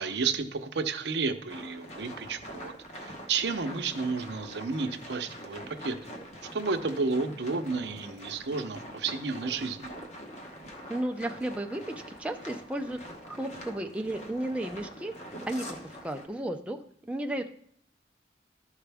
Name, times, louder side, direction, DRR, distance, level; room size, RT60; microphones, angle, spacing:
voice 1, 0.0-6.1 6.5-9.9, right 4 dB, 75° right, 7 dB, 0.7 m, -32 dB
sound 1, 1.5-16.3, equal, 40° left, 1.1 m, -44 dB
voice 2, 10.9-13.0 13.2-15.1 15.5-17.5, right 1 dB, 5° right, 3 dB, 0.4 m, -34 dB
13.0 x 4.8 x 3.4 m, 0.63 s
head